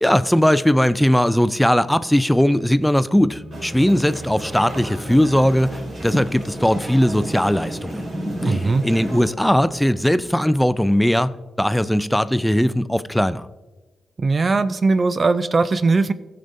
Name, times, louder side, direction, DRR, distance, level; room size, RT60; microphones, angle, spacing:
voice 1, 0.0-8.1 8.4-13.5, equal, 5° left, 0.5 m, -19 dB
sound 1, 3.1-10.8, right 1 dB, 15° right, 1.5 m, -42 dB
sound 2, 3.5-9.3, equal, 60° right, 3.2 m, -31 dB
voice 2, 8.5-8.8 14.2-16.1, right 3 dB, 45° right, 0.5 m, -19 dB
15.5 x 6.7 x 2.6 m
hypercardioid pair, 40°, 0 cm